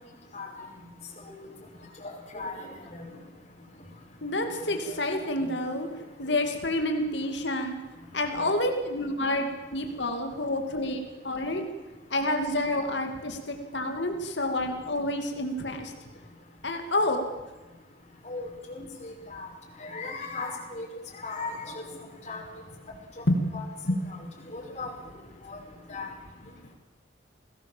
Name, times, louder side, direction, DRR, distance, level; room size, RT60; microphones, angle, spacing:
voice 1, 2.0-3.0 4.8-5.0 5.4-5.5 17.0-17.2 18.2-19.5 19.8-20.9 21.2-21.8 22.3-22.4 23.5-23.6 24.5-24.9 25.5-25.6 25.9-26.1, left 3 dB, 40° left, -2 dB, 5.6 m, -37 dB
voice 2, 4.2-5.9 6.2-7.8 8.1-11.6 12.1-15.9 16.6-17.2 23.3-23.4 23.9-24.0, left 1 dB, 70° left, 5 dB, 2.5 m, -28 dB
29.5 x 19.0 x 7.4 m, 1.2 s
head